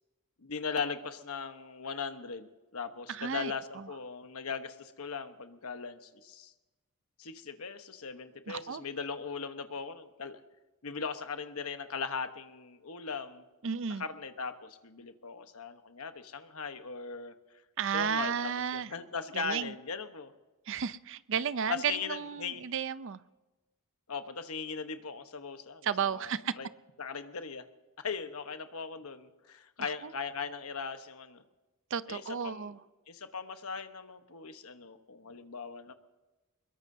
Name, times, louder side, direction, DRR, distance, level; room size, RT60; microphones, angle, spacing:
voice 1, 0.4-2.5 2.7-6.5 7.2-10.4 10.8-13.4 14.0-17.3 17.9-20.3 21.7-22.6 24.1-26.7 27.0-27.6 28.0-31.4 32.1-32.8 33.1-35.9, left 5 dB, 80° left, 8 dB, 1.1 m, -39 dB
voice 2, 3.1-3.9 8.5-8.8 13.6-14.0 17.8-18.9 19.3-19.7 20.7-23.2 25.8-26.5 29.8-30.1 31.9-32.8, right 7 dB, 60° right, 15 dB, 0.5 m, -33 dB
23.0 x 21.5 x 2.7 m, 1.1 s
head